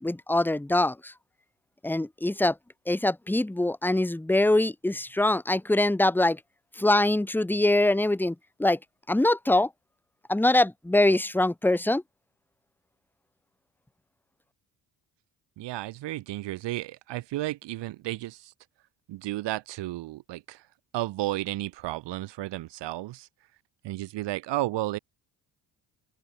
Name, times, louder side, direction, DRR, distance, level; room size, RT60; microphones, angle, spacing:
voice 1, 0.0-1.1 1.8-2.6 2.9-6.4 6.8-8.8 9.1-9.7 10.3-12.0, left 1 dB, 5° left, 1.0 m, -23 dB
voice 2, 15.6-18.5 19.1-20.7 20.9-23.3 23.8-25.0, right 16 dB, 80° right, 2.6 m, -33 dB
open air
supercardioid pair, 70°, 42 cm